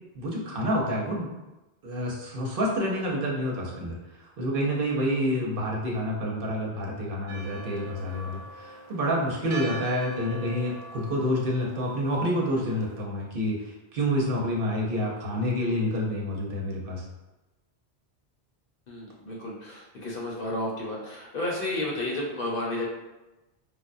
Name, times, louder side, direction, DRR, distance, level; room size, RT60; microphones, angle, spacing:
voice 1, 0.1-1.3 1.8-17.0, equal, 60° right, -3 dB, 0.9 m, -28 dB
Church bell, 7.3-13.0, right 2 dB, 85° right, 0.9 m, -42 dB
voice 2, 18.9-22.9, left 1 dB, 60° left, -4 dB, 1.0 m, -32 dB
4.8 x 2.1 x 2.5 m, 1.0 s
omnidirectional pair, 1.1 m